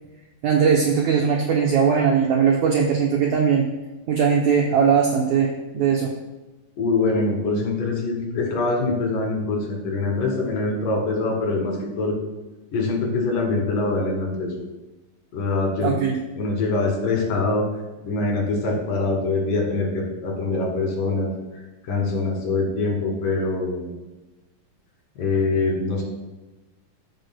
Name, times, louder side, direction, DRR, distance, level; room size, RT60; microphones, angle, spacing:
voice 1, 0.4-3.7 4.1-6.1 15.8-16.2, right 6 dB, 80° right, 0 dB, 1.7 m, -20 dB
voice 2, 6.8-12.1 12.7-14.5 15.3-15.9 16.4-17.7 18.0-21.3 21.8-23.9 25.2-26.0, left 3 dB, 65° left, -1 dB, 3.5 m, -24 dB
15.5 x 6.4 x 2.2 m, 1.1 s
omnidirectional pair, 4.2 m